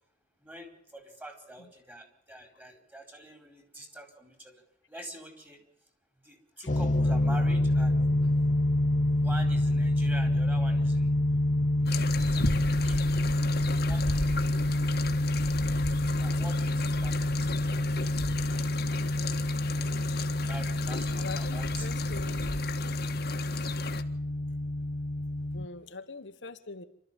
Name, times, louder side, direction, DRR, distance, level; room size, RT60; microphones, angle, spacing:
voice 1, 0.4-4.6 4.9-5.6 6.2-8.3 9.2-11.1 11.6-13.1 13.8-14.8 16.2-19.2 19.6-22.3, right 1 dB, 10° right, 4.4 m, -46 dB
sound 1, 6.7-25.7, left 1 dB, 45° left, 0.9 m, -27 dB
sound 2, 11.9-24.0, left 3 dB, 60° left, 1.7 m, -36 dB
voice 2, 21.2-22.5 25.5-26.8, left 3 dB, 85° left, 1.5 m, -43 dB
27.5 x 13.5 x 7.2 m
head